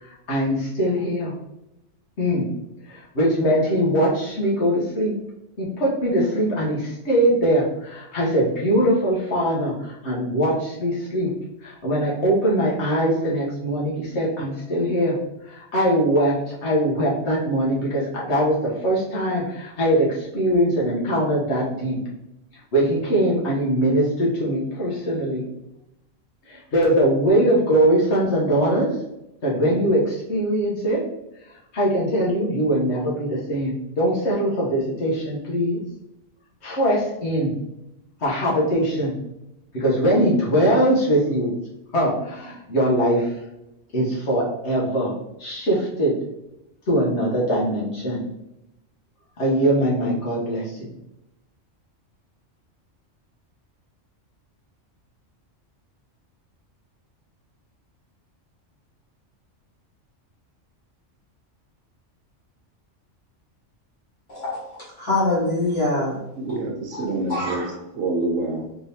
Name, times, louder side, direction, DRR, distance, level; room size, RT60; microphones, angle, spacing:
voice 1, 0.3-1.3 2.2-2.5 2.9-5.1 5.6-9.7 10.0-11.3 11.6-15.2 15.7-22.0 22.7-25.4 26.5-28.9 29.4-31.0 31.7-35.8 36.6-37.5 38.2-39.1 39.7-41.5 41.9-43.2 43.9-45.1 45.4-46.1 46.9-48.2 49.4-50.6, equal, 60° left, -4 dB, 1.3 m, -21 dB
voice 2, 64.3-66.2 66.9-67.0 67.3-67.7, left 2 dB, 40° left, -7 dB, 1.6 m, -24 dB
voice 3, 66.4-67.6 67.9-68.7, right 2 dB, 85° right, 1 dB, 1.2 m, -26 dB
3.5 x 3.4 x 2.8 m, 0.85 s
omnidirectional pair, 1.3 m